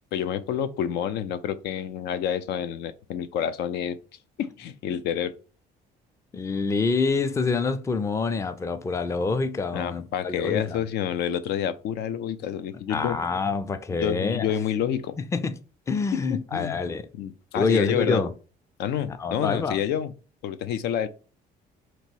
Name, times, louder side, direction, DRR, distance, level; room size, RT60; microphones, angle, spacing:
voice 1, 0.1-4.0 4.4-5.3 9.7-13.2 14.0-15.1 16.1-16.8 17.2-18.2 18.8-20.1 20.4-21.1, left 9 dB, 75° left, 0.5 m, -28 dB
voice 2, 6.3-10.8 12.9-14.6 15.3-15.6 15.9-17.1 17.5-18.3 19.1-19.8, left 4 dB, 15° left, 0.4 m, -26 dB
3.0 x 2.9 x 4.5 m
cardioid pair, 110°, 17 cm